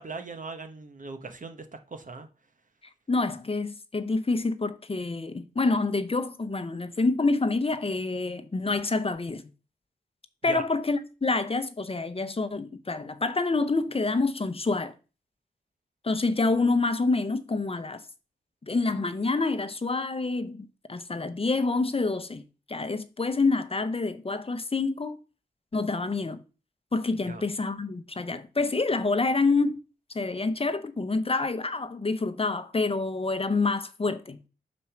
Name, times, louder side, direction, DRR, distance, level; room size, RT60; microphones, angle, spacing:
voice 1, 0.0-2.3 10.5-10.6 27.3-27.4, right 3 dB, 50° right, 1.0 m, -39 dB
voice 2, 3.1-9.5 10.4-14.9 16.0-18.0 18.7-22.4 22.7-25.2 25.7-26.4 26.9-29.8 30.1-34.4, left 3 dB, 35° left, 0.8 m, -27 dB
5.2 x 4.2 x 5.8 m
cardioid pair, 40°, 17 cm